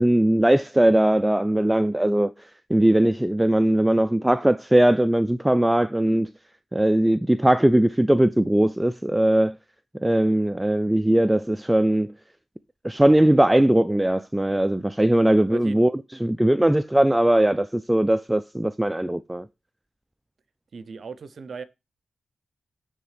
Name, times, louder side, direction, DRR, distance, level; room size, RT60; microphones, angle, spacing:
voice 1, 0.0-6.3 6.7-9.6 10.0-12.1 12.8-15.9 16.2-19.5, right 1 dB, 15° right, 0.3 m, -20 dB
voice 2, 15.5-15.8 20.7-21.6, right 5 dB, 65° right, 0.6 m, -37 dB
9.4 x 3.5 x 3.3 m
supercardioid pair, 40°, 0 cm